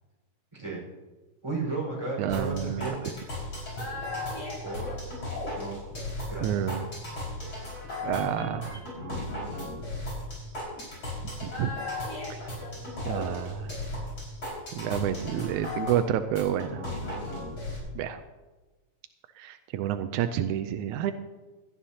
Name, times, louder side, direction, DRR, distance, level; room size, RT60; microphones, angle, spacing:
voice 1, 0.5-0.8 1.4-3.1 4.6-5.0 5.5-5.8 6.3-6.5 8.2-8.5 9.1-9.2 10.7-11.2, right 3 dB, 10° right, -3 dB, 4.7 m, -35 dB
voice 2, 2.2-3.0 6.4-6.9 8.0-8.7 11.4-11.7 12.3-12.4 13.1-13.7 14.7-16.9 18.0-18.2 19.4-21.1, right 10 dB, 85° right, 9 dB, 2.0 m, -29 dB
sound 1, 2.3-17.8, left 2 dB, 45° left, 5.9 m, -36 dB
17.5 x 13.0 x 2.8 m, 1.2 s
omnidirectional pair, 3.4 m